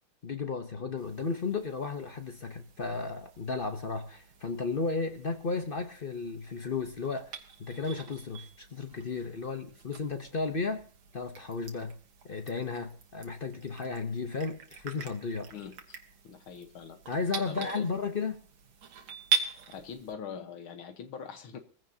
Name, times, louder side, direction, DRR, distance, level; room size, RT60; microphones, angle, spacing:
voice 1, 0.2-7.3 7.6-10.9 11.1-11.9 12.2-15.5 17.1-18.4, left 4 dB, 50° left, 0.6 m, -34 dB
sound 1, 1.0-20.1, right 6 dB, 70° right, 2.1 m, -42 dB
voice 2, 15.5-16.0 16.2-17.0 17.5-17.9 19.7-21.6, left 7 dB, 80° left, 2.0 m, -43 dB
22.0 x 15.5 x 2.8 m
omnidirectional pair, 2.3 m